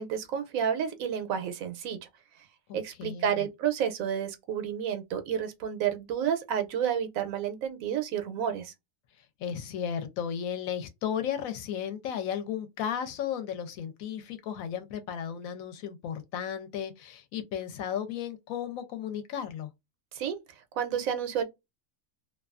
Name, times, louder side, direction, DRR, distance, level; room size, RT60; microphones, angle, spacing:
voice 1, 0.0-2.0 2.7-8.7 20.1-20.4 20.7-21.4, right 8 dB, 90° right, 1.0 m, -30 dB
voice 2, 2.7-3.4 9.4-19.7, left 8 dB, 90° left, 1.0 m, -34 dB
2.6 x 2.3 x 2.4 m
omnidirectional pair, 1.4 m